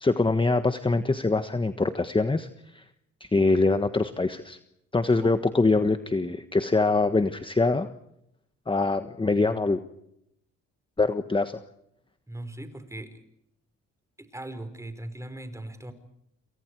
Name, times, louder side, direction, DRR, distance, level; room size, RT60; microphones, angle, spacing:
voice 1, 0.0-2.8 3.2-4.6 4.9-7.9 8.7-9.8 11.0-11.6, left 3 dB, 15° left, 9 dB, 1.4 m, -24 dB
voice 2, 12.3-13.2 14.2-15.9, right 1 dB, 10° right, 11 dB, 4.8 m, -39 dB
28.5 x 28.0 x 4.8 m, 0.79 s
cardioid pair, 90°, 30 cm